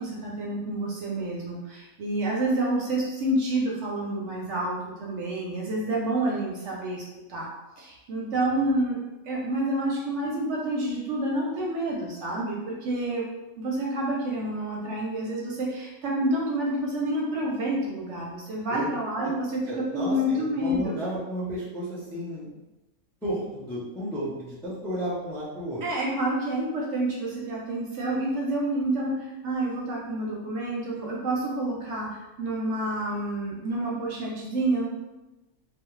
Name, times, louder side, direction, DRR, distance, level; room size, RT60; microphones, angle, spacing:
voice 1, 0.0-7.0 7.3-7.5 7.8-20.9 25.8-34.9, right 1 dB, 65° right, -3 dB, 0.8 m, -28 dB
voice 2, 19.7-22.5 23.2-25.8, equal, 5° left, -8 dB, 0.4 m, -33 dB
2.4 x 2.1 x 3.0 m, 1.0 s
omnidirectional pair, 1.5 m